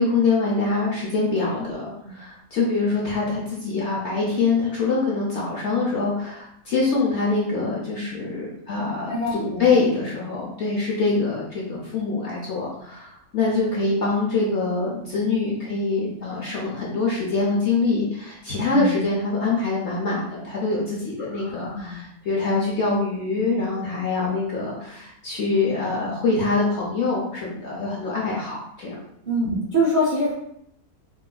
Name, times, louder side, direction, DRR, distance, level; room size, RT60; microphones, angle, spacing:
voice 1, 0.0-28.9, left 3 dB, 60° left, -4 dB, 0.7 m, -24 dB
voice 2, 9.1-9.7 18.7-18.9 21.3-22.0 29.3-30.3, equal, 55° right, -7 dB, 0.5 m, -25 dB
3.7 x 2.4 x 2.2 m, 0.73 s
omnidirectional pair, 1.7 m